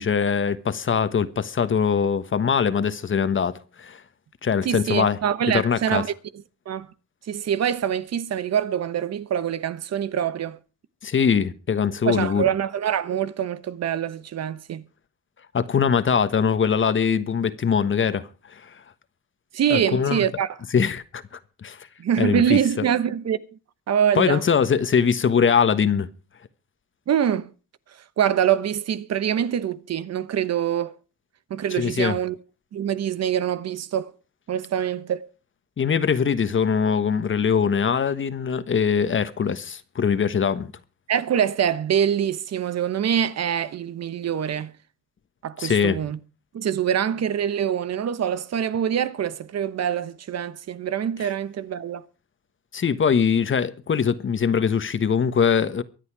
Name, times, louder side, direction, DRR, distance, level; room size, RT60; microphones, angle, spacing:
voice 1, 0.0-4.0 4.4-5.2 5.5-6.0 11.0-12.4 15.5-18.8 19.7-20.2 20.7-21.2 21.6-21.9 22.2-22.6 24.1-26.1 31.7-32.2 35.8-40.7 45.6-46.0 51.2-51.3 52.7-55.8, left 6 dB, 40° left, 1.4 m, -22 dB
voice 2, 4.6-6.1 6.7-6.9 7.3-10.6 12.0-14.8 19.5-20.5 22.0-23.4 23.9-24.4 27.1-27.5 28.2-31.0 31.5-32.3 32.7-34.1 34.5-35.3 41.1-44.7 45.4-46.2 46.5-52.0, right 9 dB, 55° right, 1.1 m, -24 dB
23.5 x 8.3 x 4.8 m
cardioid pair, 90°, 30 cm